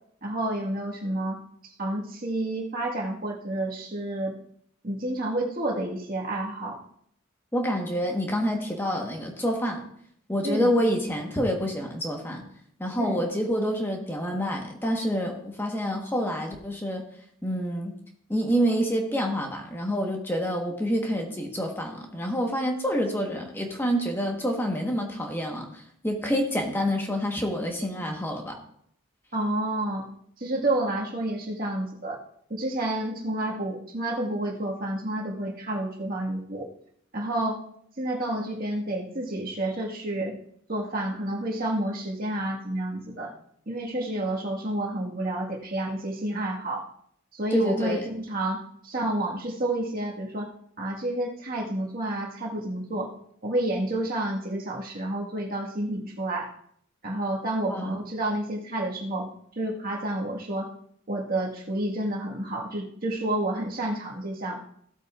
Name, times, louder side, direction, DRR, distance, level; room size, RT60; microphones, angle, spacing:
voice 1, 0.2-4.3 4.8-6.8 10.4-10.7 13.0-13.2 29.3-30.1 30.4-32.2 32.5-36.7 37.1-37.6 38.0-40.3 40.7-43.3 43.7-46.8 47.3-50.5 50.8-53.1 53.4-56.5 57.0-59.3 59.6-60.7 61.1-64.6, right 1 dB, 40° right, -1 dB, 1.7 m, -30 dB
voice 2, 7.5-9.8 10.3-12.4 12.8-17.0 17.4-17.9 18.3-28.6 47.5-48.1 57.7-58.0, equal, 10° left, 2 dB, 1.3 m, -27 dB
16.0 x 8.0 x 2.5 m, 0.67 s
head